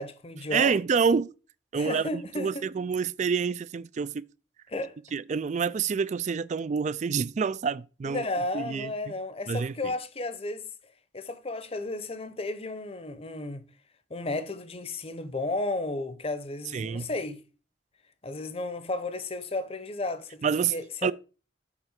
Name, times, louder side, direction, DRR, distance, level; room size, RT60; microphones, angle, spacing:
voice 1, 0.0-0.8 1.7-2.5 4.7-4.9 8.0-10.7 11.1-13.7 14.1-17.4 18.2-21.1, left 2 dB, 35° left, 0.8 m, -33 dB
voice 2, 0.5-1.3 1.7-4.3 5.1-8.3 8.5-9.1 9.5-9.7 16.7-17.1 20.4-20.8 21.0-21.1, right 6 dB, 40° right, 0.3 m, -27 dB
7.3 x 4.3 x 6.5 m
head